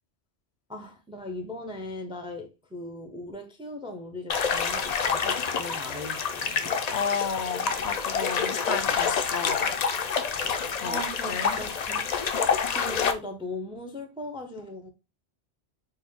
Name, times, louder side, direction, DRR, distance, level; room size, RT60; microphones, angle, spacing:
voice 1, 0.7-6.7 10.8-12.1 12.7-14.9, left 2 dB, 10° right, 0.4 m, -38 dB
sound 1, 4.3-13.1, left 6 dB, 55° left, 0.5 m, -27 dB
voice 2, 6.9-9.8 10.8-11.0 11.3-11.6, left 6 dB, 75° left, 0.8 m, -32 dB
4.3 x 2.2 x 3.5 m
omnidirectional pair, 1.1 m